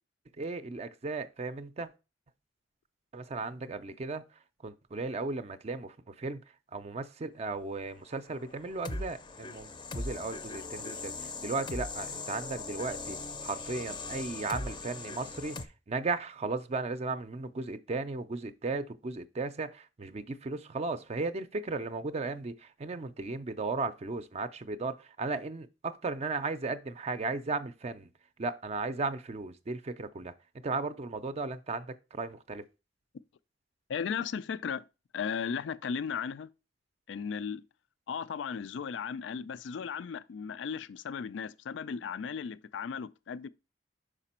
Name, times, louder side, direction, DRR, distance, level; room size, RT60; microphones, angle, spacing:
voice 1, 0.4-1.9 3.1-4.3 4.6-6.4 6.7-13.2 13.4-15.6 15.9-28.1 28.4-30.3 30.6-32.6, right 3 dB, 35° right, 0.4 m, -35 dB
sound 1, 8.3-15.7, left 3 dB, 25° left, 0.5 m, -40 dB
voice 2, 33.9-34.8 35.1-36.5 37.1-37.6 38.1-43.5, left 6 dB, 80° left, 0.4 m, -36 dB
5.9 x 4.9 x 4.3 m
head